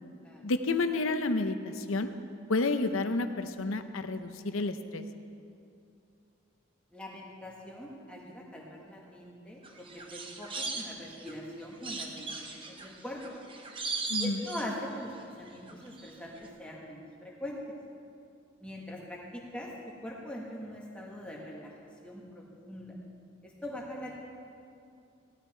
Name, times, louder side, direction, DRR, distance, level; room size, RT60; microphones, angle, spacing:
voice 1, 0.4-2.1 2.5-5.0 14.1-14.4, left 3 dB, 70° left, 9 dB, 0.7 m, -30 dB
voice 2, 6.9-9.9 10.1-13.2 14.2-17.7 18.6-19.7 20.0-21.7 22.0-22.9 23.4-24.1, left 1 dB, 5° left, -3 dB, 1.8 m, -42 dB
sound 1, 9.6-11.4 11.8-15.2 15.5-16.1 16.4-16.5, right 3 dB, 25° right, 0.8 m, -38 dB
17.0 x 12.5 x 4.5 m, 2.5 s
head